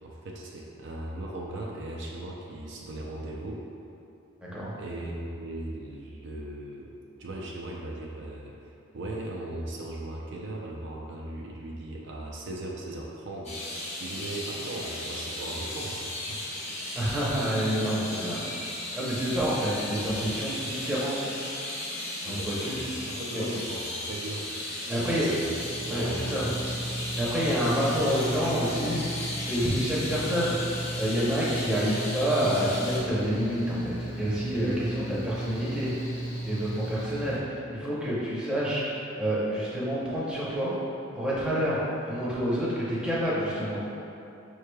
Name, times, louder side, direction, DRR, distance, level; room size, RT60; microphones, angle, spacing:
voice 1, 0.0-3.6 4.8-6.9 7.2-13.5 14.0-16.4 22.3-22.8 23.1-24.4 25.0-25.4 25.9-26.6, right 1 dB, 55° right, -3 dB, 0.4 m, -38 dB
sound 1, 13.4-33.0, left 1 dB, 30° left, 0.7 m, -36 dB
voice 2, 16.9-18.4 18.9-21.3 22.2-22.8 23.3-23.5 24.9-25.3 25.9-26.5 27.2-29.2 29.5-35.9 36.4-40.7 41.1-43.8, equal, 5° right, -8 dB, 0.6 m, -28 dB
Mechanical fan, 25.5-37.4, right 1 dB, 60° left, 1.1 m, -35 dB
5.5 x 3.1 x 2.2 m, 2.8 s
head